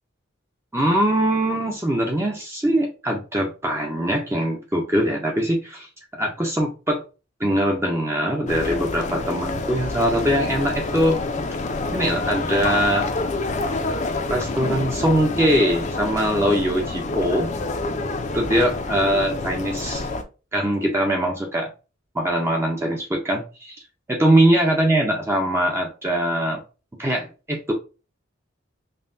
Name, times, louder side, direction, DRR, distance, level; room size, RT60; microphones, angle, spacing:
voice 1, 0.7-7.0 7.4-11.2 11.9-13.1 14.3-17.5 18.3-20.1 20.5-21.7 22.1-23.8 24.1-26.6 27.0-27.7, right 1 dB, 15° right, 0 dB, 0.5 m, -22 dB
sound 1, 8.5-20.2, left 3 dB, 35° left, 0.5 m, -27 dB
5.4 x 2.2 x 2.6 m, 0.32 s
head